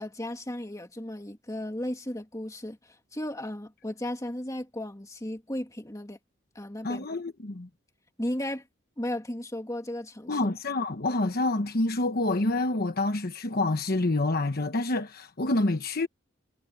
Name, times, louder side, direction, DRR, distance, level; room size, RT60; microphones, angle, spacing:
voice 1, 0.0-6.2 6.6-7.1 8.2-8.6 9.0-10.5, left 1 dB, 15° left, 2.2 m, -35 dB
voice 2, 6.8-7.7 10.3-16.1, left 2 dB, 50° left, 1.1 m, -27 dB
head